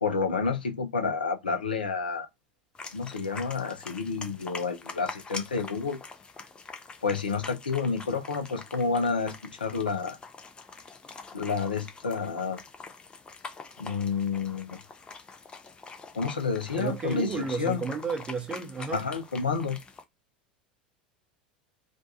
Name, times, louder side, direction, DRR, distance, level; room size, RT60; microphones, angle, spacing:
voice 1, 0.0-2.3 2.9-6.0 7.0-10.2 11.3-12.6 13.8-14.8 16.1-17.8 18.9-19.8, left 5 dB, 80° left, 0.5 m, -29 dB
sound 1, 2.8-20.0, left 4 dB, 20° left, 0.5 m, -45 dB
voice 2, 16.7-19.0, right 5 dB, 20° right, 0.7 m, -32 dB
2.5 x 2.2 x 2.7 m
figure-of-eight pair, 80°, 5 cm